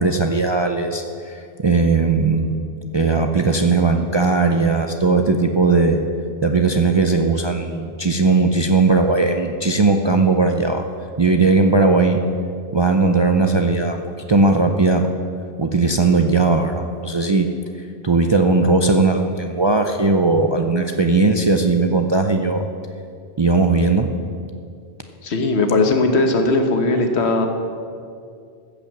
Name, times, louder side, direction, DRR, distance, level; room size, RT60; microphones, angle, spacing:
voice 1, 0.0-2.6 2.9-6.0 6.4-10.8 11.2-12.2 12.7-14.0 14.3-15.1 15.6-17.5 17.8-22.6 23.4-24.1, right 3 dB, 35° right, 4 dB, 0.4 m, -18 dB
voice 2, 25.2-27.5, left 2 dB, 75° left, 5 dB, 1.4 m, -19 dB
14.5 x 5.6 x 7.2 m, 2.3 s
omnidirectional pair, 1.1 m